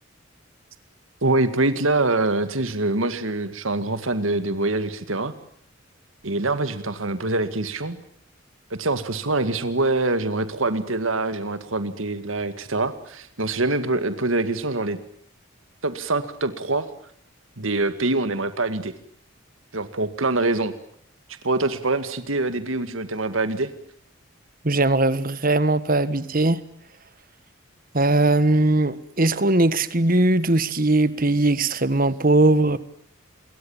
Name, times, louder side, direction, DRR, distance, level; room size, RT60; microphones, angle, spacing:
voice 1, 1.2-5.3 6.2-8.0 8.7-15.0 15.8-16.9 17.6-18.9 19.7-20.7 21.4-23.7, right 2 dB, 85° right, 11 dB, 2.1 m, -24 dB
voice 2, 24.6-26.6 27.9-32.8, right 2 dB, 45° right, 15 dB, 1.6 m, -20 dB
28.0 x 23.0 x 7.3 m, 0.66 s
head